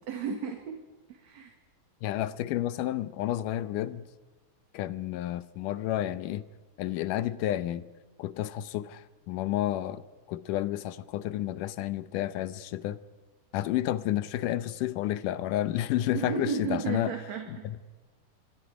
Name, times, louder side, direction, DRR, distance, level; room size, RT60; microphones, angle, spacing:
voice 1, 0.1-0.8 1.1-1.5 16.1-17.7, right 6 dB, 60° right, 3.0 m, -33 dB
voice 2, 2.0-4.0 4.7-6.4 6.8-7.8 8.2-10.0 10.3-13.0 13.5-17.1 17.6-17.8, left 13 dB, 90° left, 2.4 m, -30 dB
27.0 x 24.0 x 4.9 m
omnidirectional pair, 3.6 m